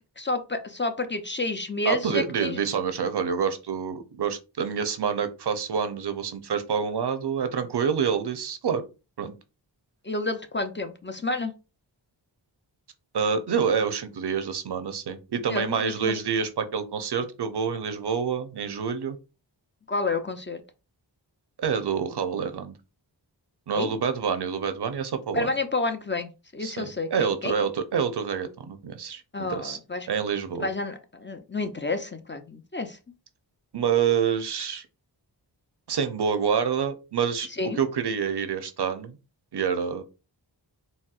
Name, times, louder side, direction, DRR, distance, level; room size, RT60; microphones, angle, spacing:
voice 1, 0.2-2.6 10.0-11.5 15.5-16.2 19.9-20.6 23.7-24.0 25.3-27.6 29.3-30.1 30.6-33.0 37.6-37.8, left 3 dB, 25° left, 7 dB, 0.4 m, -30 dB
voice 2, 1.9-8.8 9.2-9.4 13.1-19.2 21.6-22.7 23.7-25.5 26.6-29.8 30.1-30.7 33.7-34.9 35.9-37.5 37.7-39.2 39.5-40.0, right 6 dB, 65° right, 9 dB, 0.6 m, -27 dB
4.1 x 2.0 x 2.3 m, 0.30 s
wide cardioid pair, 55°, 43 cm